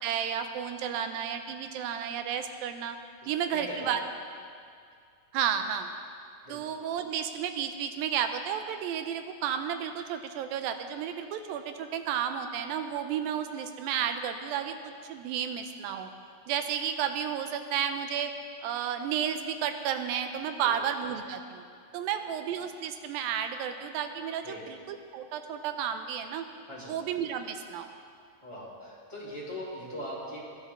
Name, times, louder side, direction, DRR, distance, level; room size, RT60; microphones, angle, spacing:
voice 1, 0.0-3.0 3.3-4.0 5.3-5.9 6.5-16.1 16.5-18.3 18.6-21.6 21.9-26.5 26.9-27.9, right 8 dB, 80° right, 7 dB, 2.3 m, -32 dB
voice 2, 3.2-3.8 6.4-6.6 20.6-20.8 22.0-22.3 24.4-24.6 26.7-26.9 28.4-30.4, equal, 10° right, -8 dB, 2.0 m, -41 dB
22.0 x 10.5 x 3.6 m, 2.3 s
omnidirectional pair, 4.3 m